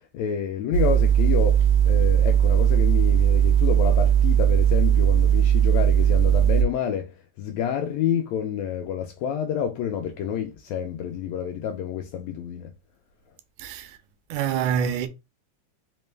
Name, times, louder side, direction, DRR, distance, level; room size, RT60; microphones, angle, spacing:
voice 1, 0.1-12.7, left 8 dB, 85° left, 1.5 m, -29 dB
sound 1, 0.7-6.6, right 9 dB, 65° left, 1.5 m, -18 dB
voice 2, 13.6-14.0 14.3-15.1, right 8 dB, 85° right, 2.0 m, -26 dB
5.0 x 2.1 x 3.2 m
omnidirectional pair, 3.5 m